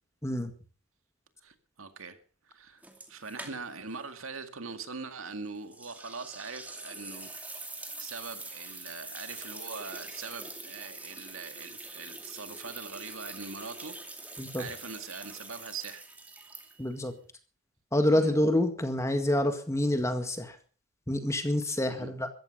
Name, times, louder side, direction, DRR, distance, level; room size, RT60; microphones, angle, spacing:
voice 1, 1.4-2.2 2.4-2.8 3.1-7.3 7.9-16.1 18.1-18.4 21.9-22.1, right 4 dB, 90° right, 2.1 m, -42 dB
sound 1, 2.8-4.0 4.2-4.3 5.7-17.0, right 2 dB, 10° right, 2.5 m, -44 dB
voice 2, 16.8-17.1 17.9-20.6 21.1-22.3, left 1 dB, 15° left, 1.9 m, -27 dB
14.5 x 14.0 x 5.5 m
head